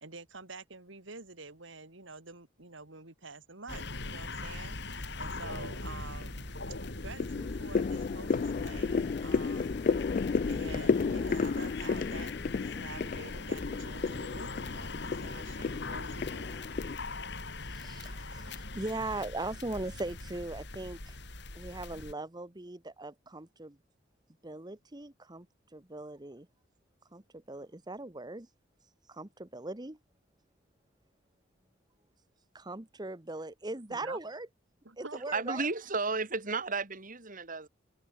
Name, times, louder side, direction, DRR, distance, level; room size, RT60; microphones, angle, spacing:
voice 1, 0.0-6.5 7.0-9.8 10.5-16.6 33.9-34.2 34.9-35.2 35.5-35.6, right 3 dB, 80° right, 3.4 m, -48 dB
sound 1, 3.7-22.1, left 2 dB, 65° left, 4.2 m, -41 dB
sound 2, 5.3-5.8 6.2-17.0, left 5 dB, 45° left, 0.4 m, -33 dB
voice 2, 17.6-21.2 21.5-23.8 24.4-25.5 25.7-26.5 27.1-28.5 29.1-30.0 32.5-34.5 35.0-35.7, right 2 dB, 20° right, 1.3 m, -40 dB
voice 3, 35.3-37.7, right 4 dB, 45° right, 3.1 m, -33 dB
head